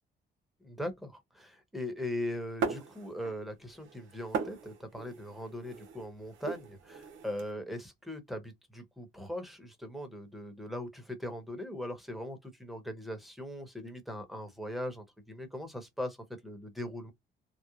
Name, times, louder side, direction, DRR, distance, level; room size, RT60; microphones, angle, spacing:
voice 1, 0.6-16.2 16.4-17.1, left 1 dB, ahead, 1.0 m, -40 dB
sound 1, 2.6-3.5 3.7-7.4, right 5 dB, 80° right, 0.8 m, -38 dB
3.0 x 2.0 x 2.4 m
cardioid pair, 90°, 20 cm